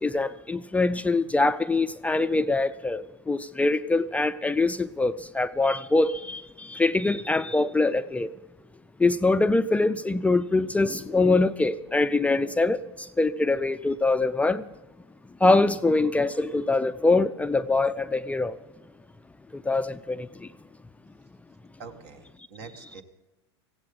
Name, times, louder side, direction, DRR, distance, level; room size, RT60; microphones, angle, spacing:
voice 1, 0.0-8.3 9.0-14.7 15.4-18.6 19.5-20.5, left 3 dB, 10° left, 0.4 m, -24 dB
voice 2, 21.8-23.0, right 5 dB, 65° right, 2.0 m, -44 dB
18.5 x 16.0 x 3.9 m
hypercardioid pair, 100°, 14 cm